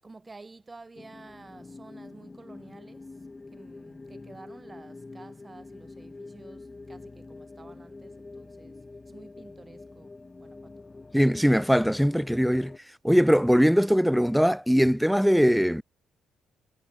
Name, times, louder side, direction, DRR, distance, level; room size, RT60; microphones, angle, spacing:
voice 1, 0.0-10.9, right 3 dB, 25° right, 6.0 m, -51 dB
sound 1, 1.0-12.8, left 3 dB, 20° left, 7.6 m, -46 dB
voice 2, 11.1-12.7 13.0-15.8, equal, ahead, 0.6 m, -21 dB
cardioid pair, 90°, 0 cm